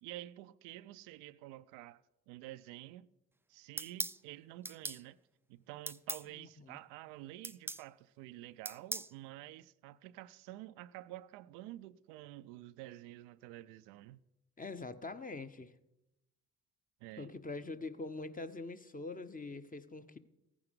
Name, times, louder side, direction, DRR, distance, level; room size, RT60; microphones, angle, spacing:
voice 1, 0.0-2.0 2.3-3.1 3.5-5.2 5.5-14.2 17.0-17.3, right 15 dB, 80° right, 0.5 m, -49 dB
sound 1, 3.8-4.2 4.6-5.0 5.9-6.2 7.4-7.8 8.6-9.1, right 2 dB, 5° right, 0.4 m, -39 dB
voice 2, 6.4-6.8 14.6-15.7 17.2-20.2, left 3 dB, 20° left, 0.9 m, -44 dB
15.0 x 9.9 x 5.2 m
hypercardioid pair, 45°, 41 cm